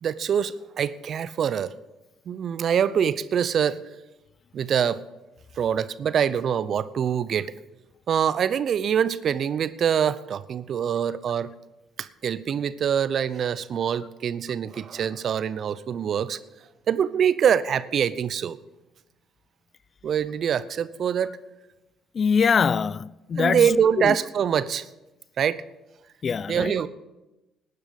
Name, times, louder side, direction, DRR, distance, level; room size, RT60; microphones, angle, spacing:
voice 1, 0.0-1.7 2.3-3.8 4.5-5.0 5.6-7.5 8.1-11.5 12.0-16.4 16.9-18.6 20.0-21.3 23.4-24.9 25.4-25.6 26.5-26.9, right 8 dB, 55° right, 0.7 m, -24 dB
voice 2, 22.2-23.7 24.0-24.1 26.2-26.7, left 6 dB, 45° left, 0.4 m, -23 dB
18.5 x 9.9 x 5.3 m
hypercardioid pair, 50°, 0 cm